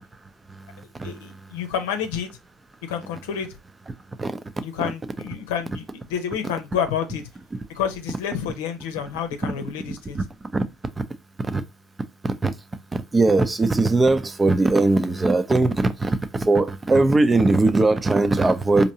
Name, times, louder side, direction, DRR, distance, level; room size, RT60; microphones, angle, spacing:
voice 1, 0.5-1.6 3.9-4.4 10.1-10.7 11.0-11.1 11.4-11.6 12.2-18.9, right 2 dB, 20° right, 0.6 m, -21 dB
voice 2, 1.0-2.3 2.8-3.6 4.6-5.8 6.1-7.2 7.7-10.2, left 8 dB, 80° left, 0.8 m, -29 dB
4.4 x 2.8 x 2.8 m
hypercardioid pair, 75°, 0 cm